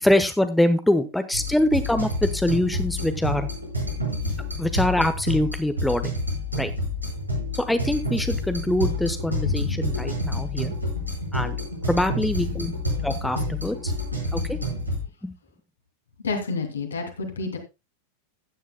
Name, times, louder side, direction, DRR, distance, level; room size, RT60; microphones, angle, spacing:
voice 1, 0.0-3.5 4.6-6.1 6.5-6.7 7.5-10.7 11.3-11.6 11.9-12.7 13.0-13.9 14.3-14.6 15.2-15.3, left 1 dB, 5° left, 9 dB, 1.0 m, -24 dB
sound 1, 1.3-15.0, left 1 dB, 85° right, 5.1 m, -29 dB
voice 2, 9.4-10.1 16.2-17.6, left 4 dB, 70° left, 4 dB, 2.8 m, -28 dB
15.5 x 9.9 x 2.2 m, 0.25 s
figure-of-eight pair, 90°, 0 cm